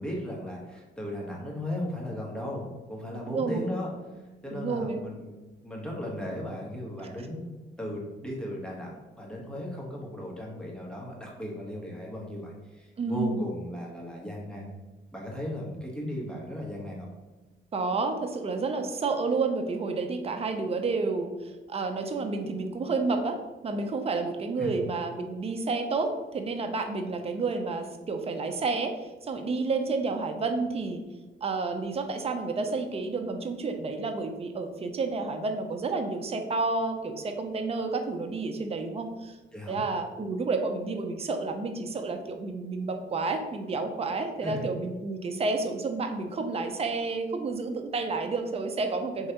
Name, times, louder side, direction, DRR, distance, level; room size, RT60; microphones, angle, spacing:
voice 1, 0.0-3.9 4.4-5.3 5.6-7.5 7.8-14.7 15.1-17.1 24.6-24.8 39.5-39.8 44.4-44.7, left 1 dB, 5° left, -3 dB, 1.2 m, -36 dB
voice 2, 3.3-3.6 4.5-5.0 7.0-7.1 13.0-13.5 17.7-31.0 31.4-39.4 39.7-49.3, right 3 dB, 30° right, 5 dB, 0.5 m, -30 dB
4.8 x 3.1 x 2.9 m, 1.2 s
cardioid pair, 90°, 20 cm